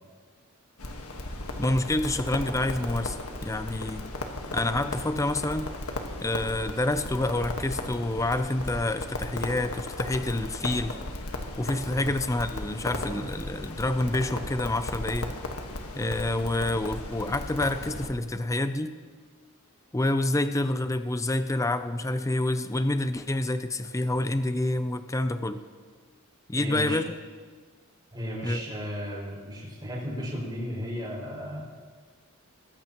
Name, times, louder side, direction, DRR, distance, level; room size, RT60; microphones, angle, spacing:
Crackle, 0.8-18.1, left 2 dB, 75° left, 1.5 m, -36 dB
voice 1, 1.6-4.1 4.5-5.7 6.2-11.0 11.6-15.3 16.0-18.9 19.9-25.6 26.5-27.1 28.4-28.6, left 2 dB, 15° left, 10 dB, 0.5 m, -28 dB
voice 2, 26.5-27.0 28.1-31.7, equal, 20° right, -4 dB, 5.8 m, -34 dB
22.5 x 15.0 x 3.0 m, 1.5 s
head